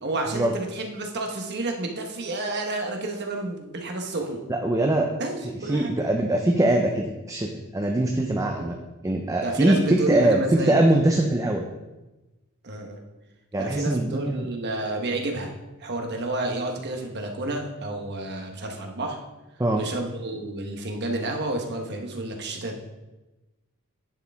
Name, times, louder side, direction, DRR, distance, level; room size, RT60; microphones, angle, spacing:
voice 1, 0.0-4.4 5.2-5.9 8.5-8.7 9.4-10.7 12.6-13.0 13.6-15.5 15.8-19.2 19.7-22.8, right 2 dB, 55° right, 3 dB, 1.1 m, -30 dB
voice 2, 4.5-5.1 5.7-8.8 9.0-11.7 13.5-14.5 19.6-19.8, right 1 dB, 15° right, 2 dB, 0.5 m, -22 dB
10.5 x 4.7 x 3.5 m, 1.1 s
head